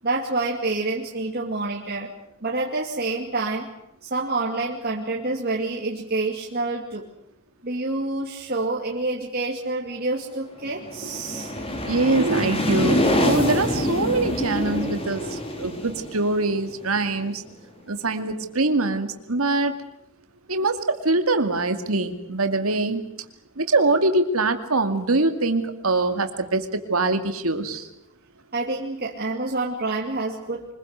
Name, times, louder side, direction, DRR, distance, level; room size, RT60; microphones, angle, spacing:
voice 1, 0.0-2.1 2.4-3.7 4.0-7.1 7.6-11.5 28.5-30.7, right 2 dB, 45° right, -1 dB, 2.5 m, -27 dB
sound 1, 10.6-17.3, left 1 dB, 25° left, 4.1 m, -26 dB
voice 2, 11.9-17.4 17.9-19.7 20.5-23.1 23.6-27.9, right 2 dB, 85° right, 7 dB, 2.4 m, -23 dB
25.0 x 21.5 x 8.1 m, 0.80 s
head